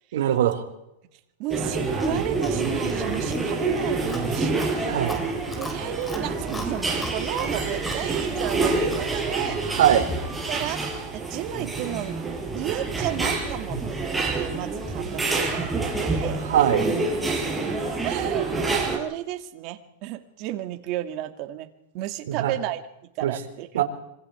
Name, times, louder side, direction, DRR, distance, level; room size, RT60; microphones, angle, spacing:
voice 1, 0.1-0.6 4.9-5.2 9.7-10.0 16.4-16.9 22.3-22.5 23.2-23.3 23.7-23.8, right 10 dB, 80° right, 5 dB, 4.3 m, -21 dB
voice 2, 1.4-5.0 5.6-9.6 10.5-12.2 12.5-13.8 14.2-15.7 16.0-16.4 18.0-21.7 21.9-23.8, right 13 dB, 45° right, 7 dB, 2.5 m, -33 dB
sound 1, 1.5-19.0, right 3 dB, 5° right, 5.7 m, -27 dB
Chewing mastication, 1.9-9.2, left 1 dB, 10° left, 4.0 m, -40 dB
26.0 x 25.5 x 4.8 m, 0.85 s
supercardioid pair, 145°, 0 cm